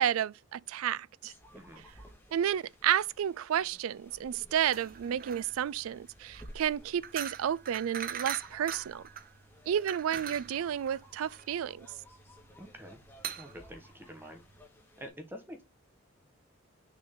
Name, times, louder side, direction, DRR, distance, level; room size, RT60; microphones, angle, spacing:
voice 1, 0.0-1.3 2.3-9.0 9.7-11.9, right 9 dB, 85° right, 0.3 m, -31 dB
sound 1, 1.2-15.1, equal, 10° left, 1.6 m, -56 dB
voice 2, 1.5-1.8 12.6-13.0 13.4-14.4 15.0-15.6, equal, 10° right, 1.2 m, -47 dB
sound 2, 4.6-14.6, right 8 dB, 45° right, 0.6 m, -42 dB
6.5 x 3.9 x 3.7 m
head